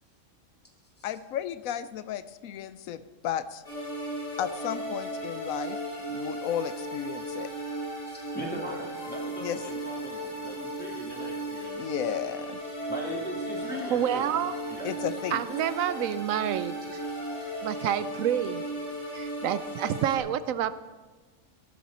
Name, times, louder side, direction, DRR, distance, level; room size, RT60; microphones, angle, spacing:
voice 1, 1.0-3.6 4.4-5.8 6.1-7.5 9.4-9.6 11.8-12.6 14.8-15.5, left 10 dB, 85° left, 14 dB, 1.0 m, -33 dB
sound 1, 3.6-20.2, right 1 dB, 65° left, 3.6 m, -36 dB
voice 2, 8.1-12.1 12.9-14.3 14.7-15.0, equal, 5° left, -2 dB, 2.7 m, -39 dB
voice 3, 13.9-14.5 15.3-17.0 17.6-18.6 19.1-20.7, right 10 dB, 80° right, 14 dB, 1.0 m, -28 dB
15.5 x 11.5 x 4.2 m, 1.3 s
omnidirectional pair, 1.4 m